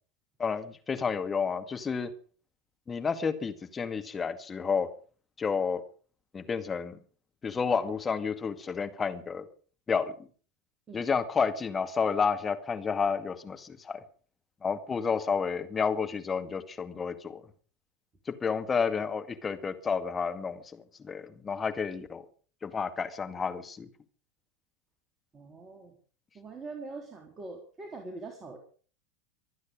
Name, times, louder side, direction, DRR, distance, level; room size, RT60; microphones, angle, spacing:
voice 1, 0.4-2.1 2.9-4.9 5.4-5.8 6.3-7.0 7.4-9.4 9.9-10.1 10.9-14.0 14.6-17.4 18.4-20.6 21.0-22.2 22.6-23.9, left 5 dB, 20° left, 8 dB, 2.2 m, -30 dB
voice 2, 25.3-25.9 26.3-28.6, right 3 dB, 25° right, 2 dB, 3.6 m, -43 dB
25.0 x 9.6 x 5.2 m, 0.42 s
figure-of-eight pair, 85°, 0 cm